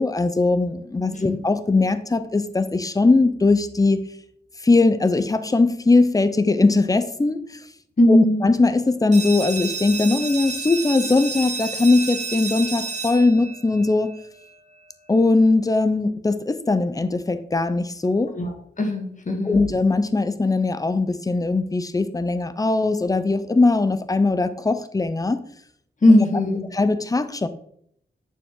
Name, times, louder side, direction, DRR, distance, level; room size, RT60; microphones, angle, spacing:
voice 1, 0.0-4.0 4.6-7.4 8.1-14.1 15.1-18.3 19.5-25.4 26.7-27.5, left 3 dB, 20° left, 12 dB, 0.6 m, -20 dB
voice 2, 8.0-8.4 18.3-18.5 18.8-19.6 26.0-26.7, left 1 dB, 40° left, 3 dB, 1.7 m, -18 dB
sound 1, 9.1-14.5, right 4 dB, 40° right, 1.7 m, -31 dB
9.3 x 6.7 x 3.8 m, 0.67 s
wide cardioid pair, 135°, 19 cm